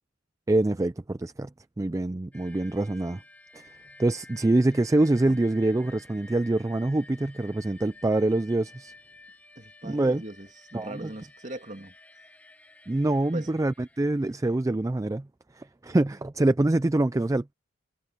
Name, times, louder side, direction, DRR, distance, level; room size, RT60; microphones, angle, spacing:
voice 1, 0.5-1.5 1.8-3.2 3.5-3.7 4.0-8.9 9.8-10.2 10.7-11.1 12.9-15.3 15.5-17.5, right 2 dB, 15° right, 0.3 m, -25 dB
sound 1, 2.3-14.7, left 2 dB, 5° left, 2.3 m, -53 dB
voice 2, 9.6-11.9 13.3-13.5, right 1 dB, 35° right, 2.3 m, -40 dB
head